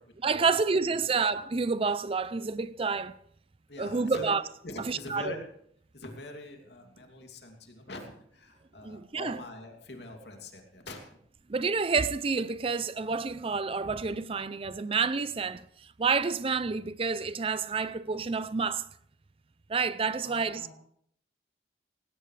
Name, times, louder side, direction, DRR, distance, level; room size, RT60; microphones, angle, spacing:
voice 1, 0.2-3.2 3.8-4.4 4.9-5.3 8.8-9.4 11.5-15.6 16.0-18.9 19.7-20.7, right 4 dB, 30° right, 0.5 m, -29 dB
voice 2, 3.7-4.3 4.6-5.4 5.9-11.1 20.1-20.7, left 1 dB, 70° left, 2.7 m, -43 dB
18.5 x 16.5 x 3.3 m
head